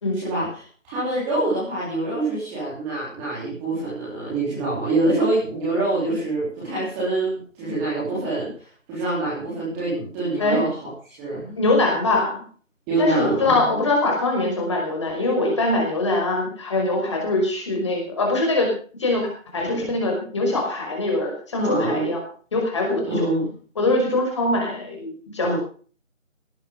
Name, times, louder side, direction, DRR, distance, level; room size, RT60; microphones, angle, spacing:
voice 1, 0.1-11.6 12.9-13.7 21.6-22.1 23.1-23.5 25.4-25.5, right 2 dB, 5° right, -9 dB, 3.7 m, -25 dB
voice 2, 11.6-12.4 13.0-18.7 19.0-22.2 22.5-23.3 23.8-25.6, left 2 dB, 20° left, 1 dB, 5.3 m, -23 dB
18.5 x 12.5 x 5.3 m, 0.42 s
figure-of-eight pair, 170°, 39 cm